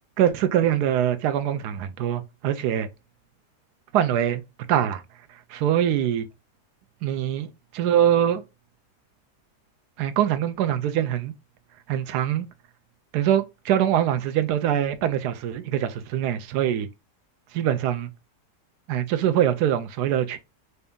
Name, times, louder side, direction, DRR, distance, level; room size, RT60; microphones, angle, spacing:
voice 1, 0.2-2.9 3.9-4.4 4.7-5.0 5.5-6.3 7.0-8.4 10.0-11.3 11.9-12.5 13.1-16.9 17.5-18.1 18.9-20.4, right 10 dB, 75° right, 1.1 m, -23 dB
3.3 x 2.7 x 3.5 m
omnidirectional pair, 1.8 m